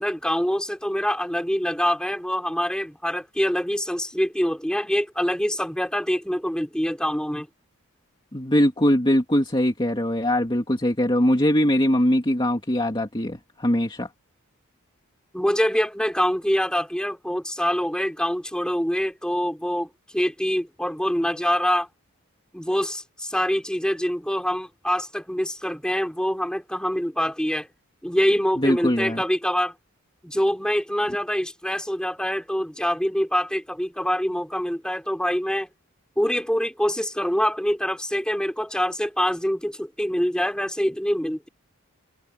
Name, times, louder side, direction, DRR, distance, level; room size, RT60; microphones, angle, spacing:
voice 1, 0.0-7.5 15.3-21.9 22.5-27.7 28.0-29.7 30.2-35.7 36.2-41.5, equal, 5° left, 4.3 m, -25 dB
voice 2, 8.3-14.1 28.6-29.2, left 1 dB, 20° left, 2.2 m, -21 dB
head